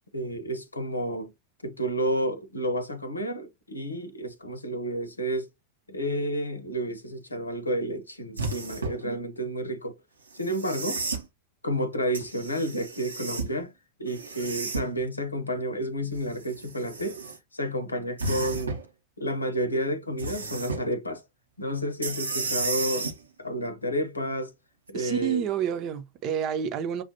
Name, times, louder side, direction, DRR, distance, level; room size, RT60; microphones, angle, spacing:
voice 1, 0.1-1.3 1.6-5.5 5.9-10.0 10.3-11.0 11.6-13.7 14.0-17.2 17.5-18.8 19.2-21.2 21.6-23.1 23.4-24.5 24.9-25.4, equal, 80° left, 0.8 m, -30 dB
sound 1, 8.4-9.0 10.4-11.2 12.1-13.5 14.1-15.0 16.1-17.4 18.2-18.9 20.2-20.8 22.0-23.2 24.9-25.0, right 3 dB, 75° right, 0.9 m, -33 dB
voice 2, 24.9-27.0, right 8 dB, 40° right, 0.8 m, -29 dB
6.8 x 2.5 x 2.8 m
figure-of-eight pair, 90°, 0 cm